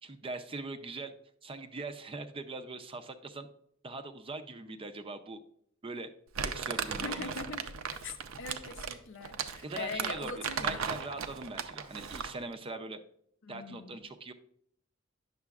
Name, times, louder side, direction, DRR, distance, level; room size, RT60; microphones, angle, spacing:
voice 1, 0.0-1.1 1.4-3.5 3.8-5.4 5.8-6.1 6.4-7.3 9.6-13.0 13.5-14.3, right 3 dB, 25° right, 0.5 m, -41 dB
Crumpling crinkling, 6.3-12.4, right 6 dB, 75° right, 0.5 m, -37 dB
voice 2, 7.0-7.8 8.0-10.9 13.4-14.0, left 4 dB, 65° left, 0.6 m, -42 dB
9.5 x 6.7 x 2.4 m
head